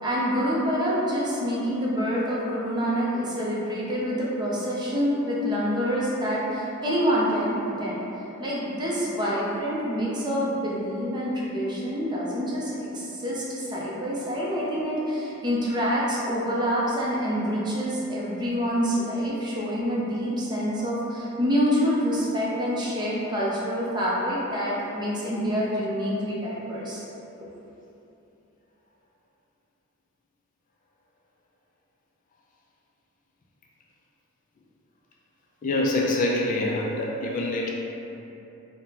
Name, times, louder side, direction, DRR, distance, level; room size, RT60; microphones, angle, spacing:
voice 1, 0.0-27.0, equal, 20° right, -6 dB, 0.6 m, -27 dB
voice 2, 35.6-37.7, left 2 dB, 40° left, -2 dB, 0.3 m, -25 dB
3.6 x 2.1 x 4.0 m, 3.0 s
head